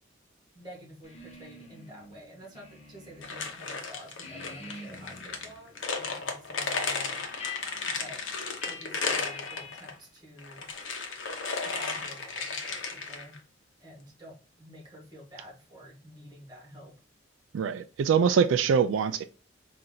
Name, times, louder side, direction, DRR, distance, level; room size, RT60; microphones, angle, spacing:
voice 1, 0.5-7.2 7.9-8.2 8.6-10.7 11.6-13.4 13.8-16.9, equal, 20° right, 1.5 m, -49 dB
sound 1, 1.0-3.5 3.8-10.0, left 4 dB, 35° left, 1.0 m, -47 dB
sound 2, 3.2-9.9 10.4-13.4, left 4 dB, 85° left, 0.8 m, -34 dB
voice 2, 17.5-19.2, right 6 dB, 85° right, 0.3 m, -24 dB
4.3 x 2.5 x 3.8 m
head